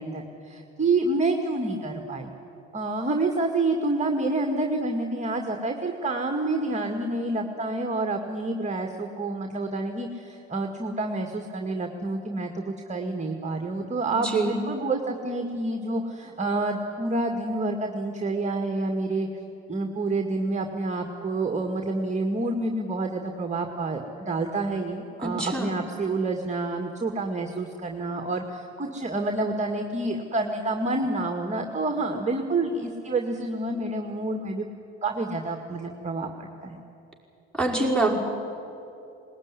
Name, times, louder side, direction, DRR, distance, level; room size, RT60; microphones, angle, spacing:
voice 1, 0.0-2.3 2.7-19.3 19.7-34.7 35.0-36.8, right 2 dB, 20° right, 3 dB, 2.0 m, -28 dB
voice 2, 14.1-14.5 25.2-25.7 37.5-38.2, right 2 dB, ahead, -4 dB, 5.5 m, -25 dB
20.0 x 19.5 x 9.8 m, 2.8 s
hypercardioid pair, 65°, 32 cm